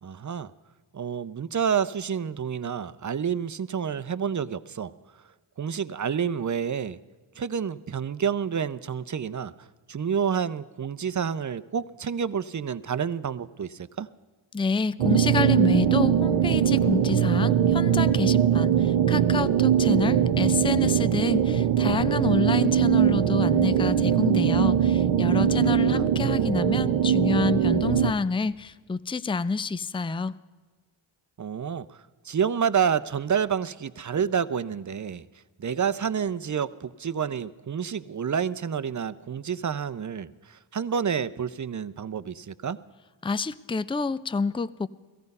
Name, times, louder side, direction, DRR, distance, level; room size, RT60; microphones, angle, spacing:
voice 1, 0.0-0.5 0.9-4.9 5.6-7.0 7.4-14.1 25.9-26.1 31.4-35.3 35.6-42.8, right 7 dB, 35° right, 15 dB, 0.7 m, -29 dB
voice 2, 14.5-30.4 43.2-44.9, left 4 dB, 10° left, 16 dB, 0.5 m, -28 dB
sound 1, 15.0-28.1, right 9 dB, 85° right, 0.7 m, -21 dB
17.0 x 14.0 x 5.4 m, 1.4 s
cardioid pair, 45°, 49 cm